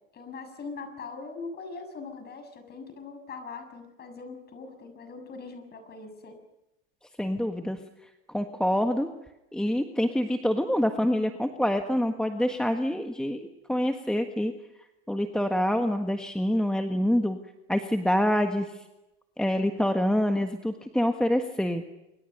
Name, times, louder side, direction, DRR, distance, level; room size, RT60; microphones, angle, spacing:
voice 1, 0.1-6.4, left 4 dB, 30° left, 8 dB, 6.9 m, -41 dB
voice 2, 7.2-7.8 8.3-9.1 9.5-14.5 15.1-17.4 17.7-18.8 19.4-21.8, equal, ahead, 6 dB, 1.5 m, -26 dB
27.5 x 24.0 x 6.7 m, 0.93 s
supercardioid pair, 115°, 33 cm